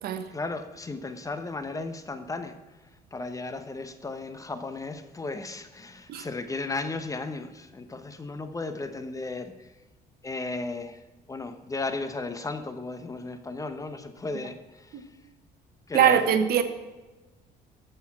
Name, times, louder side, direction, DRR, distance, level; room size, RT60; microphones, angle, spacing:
voice 1, 0.3-2.6 3.1-9.7 10.2-11.0 11.3-15.1 15.9-16.4, left 3 dB, 20° left, 9 dB, 1.0 m, -35 dB
voice 2, 15.9-16.6, right 9 dB, 65° right, 10 dB, 1.2 m, -22 dB
13.0 x 7.0 x 6.1 m, 1.2 s
cardioid pair, 110°, 17 cm